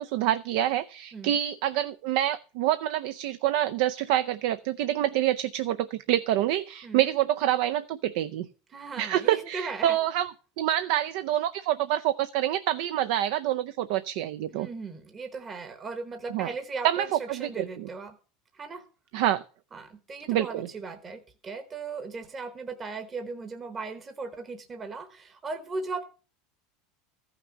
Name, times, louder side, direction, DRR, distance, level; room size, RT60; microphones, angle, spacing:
voice 1, 0.0-8.5 9.0-10.3 10.6-14.7 16.3-16.5 16.8-17.9 19.1-19.4 20.3-20.7, right 12 dB, 60° right, 11 dB, 0.5 m, -27 dB
voice 2, 8.7-10.0 14.5-18.2 18.5-18.8 19.7-26.0, right 4 dB, 20° right, 8 dB, 1.0 m, -37 dB
14.5 x 6.0 x 7.1 m, 0.37 s
supercardioid pair, 165°, 0 cm